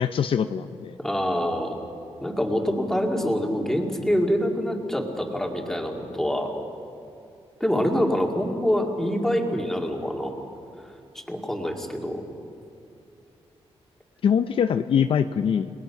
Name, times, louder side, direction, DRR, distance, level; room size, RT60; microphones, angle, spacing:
voice 1, 0.0-1.0 14.2-15.7, left 7 dB, 60° left, 10 dB, 0.6 m, -23 dB
voice 2, 1.0-1.8 2.2-6.5 7.6-10.4 11.1-12.2, equal, 5° left, 1 dB, 2.2 m, -25 dB
29.5 x 19.5 x 5.9 m, 2.7 s
wide cardioid pair, 170°, 10 cm